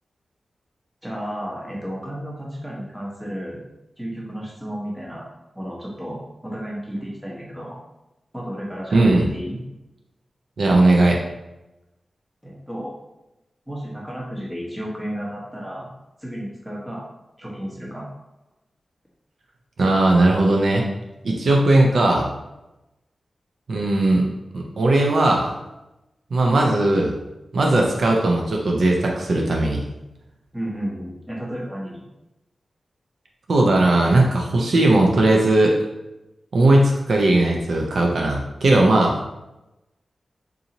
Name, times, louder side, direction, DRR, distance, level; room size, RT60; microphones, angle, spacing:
voice 1, 1.0-3.6 4.0-5.3 5.5-6.2 6.4-7.8 8.3-9.6 12.4-12.9 13.7-15.9 16.2-17.0 17.4-18.1 30.5-32.0, equal, 5° right, -4 dB, 1.0 m, -32 dB
voice 2, 8.9-9.3 10.6-11.2 19.8-20.9 21.2-22.3 23.7-24.3 24.5-25.5 26.3-27.1 27.5-29.9 33.5-35.7 36.5-39.2, right 2 dB, 70° right, 0 dB, 0.5 m, -18 dB
3.8 x 2.7 x 2.9 m, 0.95 s
wide cardioid pair, 110°, 0 cm